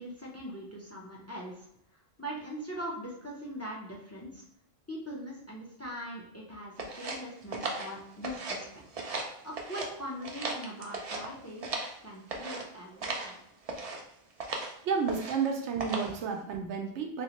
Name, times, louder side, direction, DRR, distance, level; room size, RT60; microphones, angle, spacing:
voice 1, 0.0-1.7 2.2-4.4 4.9-8.7 9.4-11.7 12.0-13.4, equal, 20° left, -3 dB, 0.5 m, -41 dB
sound 1, 6.8-8.7 8.9-9.9 10.2-12.0 12.3-12.6 13.0-13.3 13.7-14.0 14.4-14.7 15.1-15.5 15.8-16.2, right 3 dB, 50° right, 0.4 m, -36 dB
voice 2, 14.8-17.2, right 5 dB, 85° right, 3 dB, 0.9 m, -31 dB
3.1 x 2.9 x 2.9 m, 0.72 s
omnidirectional pair, 1.1 m